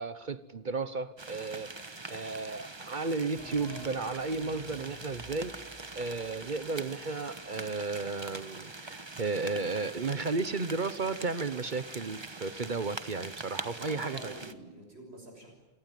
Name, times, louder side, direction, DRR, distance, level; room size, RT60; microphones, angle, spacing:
voice 1, 0.0-1.7 2.1-14.3, right 4 dB, 50° right, 13 dB, 1.2 m, -34 dB
sound 1, 1.2-14.5, right 3 dB, 25° right, 1.2 m, -44 dB
sound 2, 3.4-6.9, left 1 dB, 5° left, 6.7 m, -52 dB
voice 2, 13.8-15.5, right 1 dB, 90° right, 2 dB, 6.8 m, -47 dB
28.0 x 19.0 x 9.2 m, 1.2 s
omnidirectional pair, 1.0 m